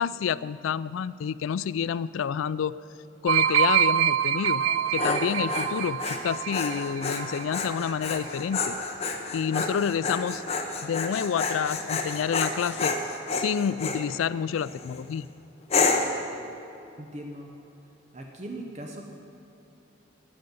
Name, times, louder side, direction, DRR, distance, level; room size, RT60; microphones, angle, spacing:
voice 1, 0.0-2.7 3.2-4.6 4.9-8.8 9.3-10.4 10.8-12.9 13.3-15.3, left 7 dB, 90° left, 18 dB, 0.3 m, -29 dB
sound 1, 3.3-7.8 8.1-8.4, right 9 dB, 85° right, 0.4 m, -26 dB
Dog, 4.6-14.0 14.6-15.0 15.7-16.2, left 3 dB, 30° left, 0.8 m, -29 dB
voice 2, 17.0-17.5 18.1-19.0, right 1 dB, 35° right, 2 dB, 0.8 m, -39 dB
9.2 x 8.8 x 9.3 m, 2.8 s
head